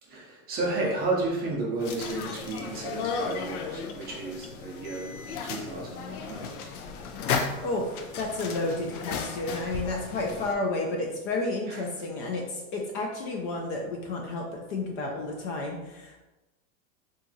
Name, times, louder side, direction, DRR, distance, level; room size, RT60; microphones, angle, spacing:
voice 1, 0.1-5.1 5.4-6.7 11.7-11.8, right 2 dB, 25° right, -3 dB, 0.5 m, -32 dB
sound 1, 1.8-10.5, left 5 dB, 90° left, 0.5 m, -35 dB
voice 2, 7.6-16.2, left 2 dB, 40° left, 0 dB, 0.4 m, -31 dB
2.8 x 2.4 x 2.6 m, 1.0 s
supercardioid pair, 135°, 42 cm